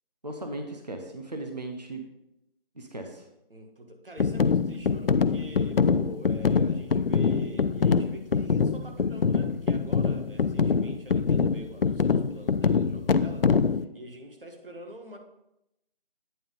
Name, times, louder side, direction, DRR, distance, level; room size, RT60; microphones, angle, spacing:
voice 1, 0.2-2.0 2.8-3.2, right 2 dB, 45° right, 4 dB, 0.8 m, -37 dB
voice 2, 3.5-15.2, equal, 65° right, 3 dB, 1.5 m, -45 dB
sound 1, 4.2-13.9, left 5 dB, 70° left, 0.4 m, -24 dB
9.1 x 3.7 x 5.1 m, 0.87 s
figure-of-eight pair, 180°, 29 cm